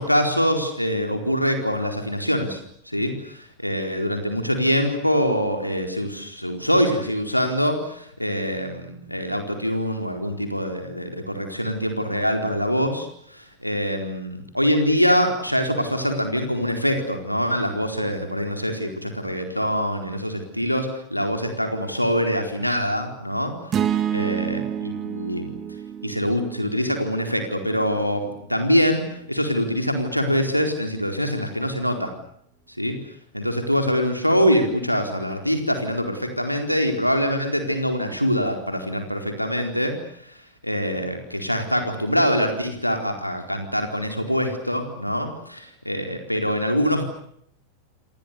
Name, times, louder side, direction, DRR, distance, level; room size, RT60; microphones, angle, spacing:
voice 1, 0.0-2.6 2.9-23.5 24.1-25.6 26.0-28.2 28.5-32.1 32.8-33.0 33.3-39.9 40.2-40.3 40.6-47.0, equal, 90° left, 5 dB, 4.3 m, -24 dB
sound 1, 23.7-28.0, right 9 dB, 30° right, 2.1 m, -29 dB
28.0 x 27.5 x 6.9 m, 0.70 s
figure-of-eight pair, 90°, 0 cm